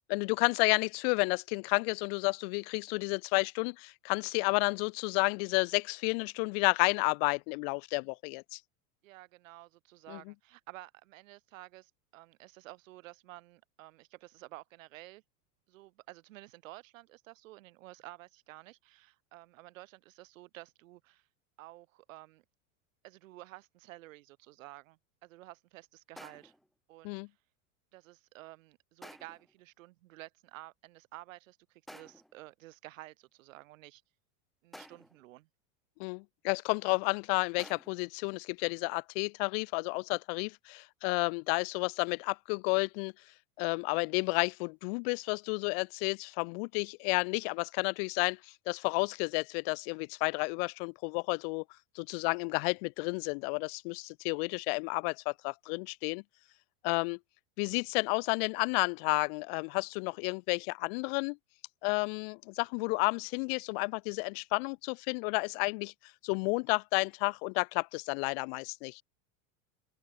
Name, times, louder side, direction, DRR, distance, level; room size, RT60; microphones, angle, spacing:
voice 1, 0.1-8.6 10.1-10.2 27.0-27.3 36.0-43.1 43.6-51.6 51.9-56.2 56.8-57.2 57.6-61.4 61.8-65.9 66.2-69.0, left 35 dB, 45° left, 1.0 m, -31 dB
voice 2, 9.0-15.2 15.7-21.2 21.6-22.4 23.0-26.5 26.9-27.2 27.9-34.0 34.6-35.5, right 18 dB, 70° right, 4.5 m, -52 dB
sound 1, 26.2-26.7 29.0-29.5 31.9-32.4 34.7-35.3 37.6-38.1, equal, ahead, 1.5 m, -52 dB
open air
supercardioid pair, 155°, 40 cm